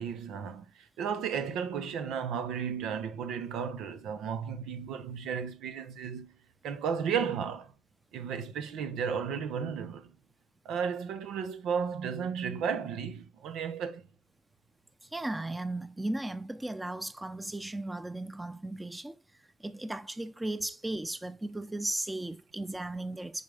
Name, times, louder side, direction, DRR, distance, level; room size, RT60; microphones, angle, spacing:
voice 1, 0.0-6.4 6.6-7.7 8.1-10.1 10.6-14.0, right 7 dB, 85° right, 1.0 m, -34 dB
voice 2, 15.0-19.2 19.6-23.4, right 2 dB, 10° right, 0.7 m, -36 dB
8.5 x 5.5 x 3.5 m
cardioid pair, 90°, 0 cm